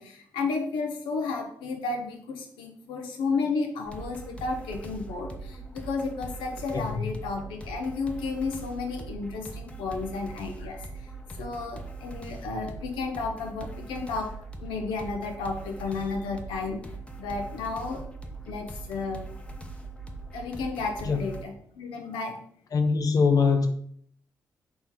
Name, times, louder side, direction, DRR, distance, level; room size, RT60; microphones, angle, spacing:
voice 1, 0.0-11.1 11.4-16.8 17.2-18.1 18.4-19.2 20.3-22.4, left 4 dB, 85° left, 0.7 m, -32 dB
sound 1, 3.9-21.4, right 3 dB, 15° left, 0.7 m, -41 dB
voice 2, 22.7-23.7, left 5 dB, 50° left, 0.4 m, -22 dB
4.1 x 2.9 x 3.7 m
supercardioid pair, 45°, 8 cm